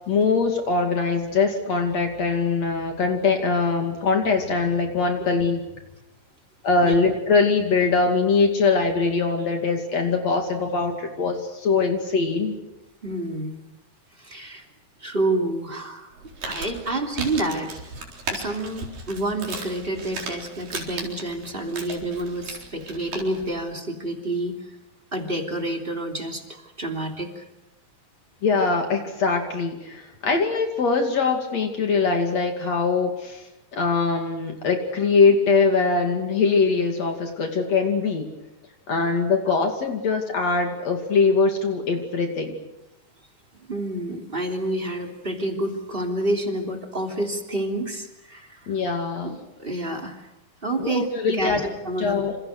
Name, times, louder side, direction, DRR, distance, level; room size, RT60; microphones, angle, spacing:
voice 1, 0.1-5.6 6.6-12.6 28.4-33.4 33.7-38.3 38.9-42.6 48.7-49.3 50.8-51.6 52.0-52.4, left 4 dB, 55° left, 4 dB, 3.6 m, -22 dB
voice 2, 13.0-13.6 14.2-14.6 15.0-16.1 16.4-18.0 18.3-24.7 25.1-27.4 43.7-48.7 49.2-50.3 50.6-52.2, right 1 dB, 15° right, 3 dB, 3.0 m, -29 dB
Crumpling crinkling, 16.1-23.5, right 3 dB, 90° right, 5.8 m, -36 dB
27.5 x 27.5 x 6.6 m, 0.93 s
omnidirectional pair, 3.8 m